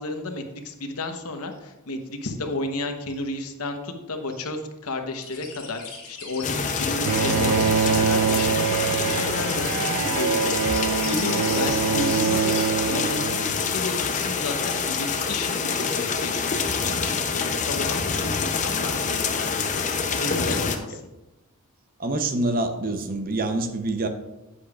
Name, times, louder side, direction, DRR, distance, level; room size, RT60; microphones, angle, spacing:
voice 1, 0.0-5.8 6.1-10.6 11.1-12.6 12.8-19.6 19.9-21.0, left 2 dB, 90° left, 6 dB, 0.9 m, -32 dB
sound 1, 5.1-12.6, left 5 dB, 70° left, 2.9 m, -39 dB
sound 2, 6.4-20.8, left 5 dB, 35° left, 0.5 m, -26 dB
Bowed string instrument, 7.0-13.8, right 7 dB, 80° right, 0.3 m, -25 dB
voice 2, 22.0-24.1, right 2 dB, 40° right, 7 dB, 0.7 m, -26 dB
9.9 x 8.5 x 2.4 m, 1.0 s
head